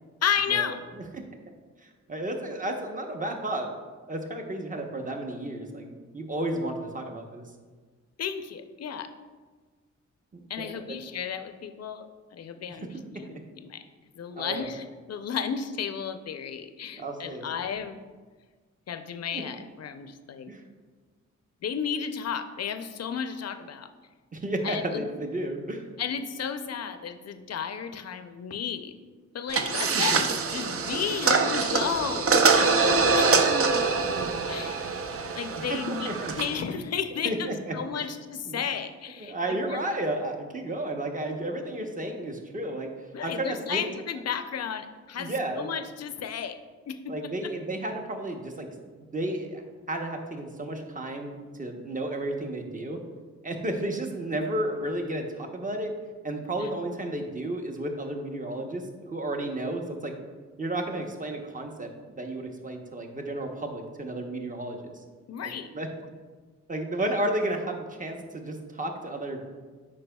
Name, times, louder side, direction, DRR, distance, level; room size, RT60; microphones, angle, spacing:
voice 1, 0.2-0.8 8.2-9.1 10.5-12.9 13.1-13.8 14.1-18.0 18.9-20.5 21.6-23.9 24.6-25.0 26.0-28.9 29.3-32.7 33.1-33.4 34.5-34.8 35.4-39.8 43.1-46.6 46.9-47.1 47.4-47.5 56.6-56.7 65.3-65.7, left 7 dB, 60° left, 9 dB, 0.5 m, -33 dB
voice 2, 1.8-3.7 4.1-7.4 10.3-11.0 12.8-13.0 14.3-14.7 16.9-17.5 19.3-19.4 20.5-20.6 24.3-25.8 29.9-30.2 35.7-36.3 37.2-37.5 38.0-38.1 38.4-38.6 39.2-42.9 43.2-43.8 45.2-45.7 47.1-48.7 48.9-49.6 49.9-53.0 53.4-55.9 56.2-60.1 60.6-61.9 62.2-65.0 65.4-65.9 66.7-69.5, right 1 dB, 25° right, 3 dB, 0.9 m, -32 dB
sound 1, 29.5-36.6, right 4 dB, 50° right, 0.6 m, -24 dB
8.4 x 5.1 x 2.3 m, 1.4 s
cardioid pair, 60°, 30 cm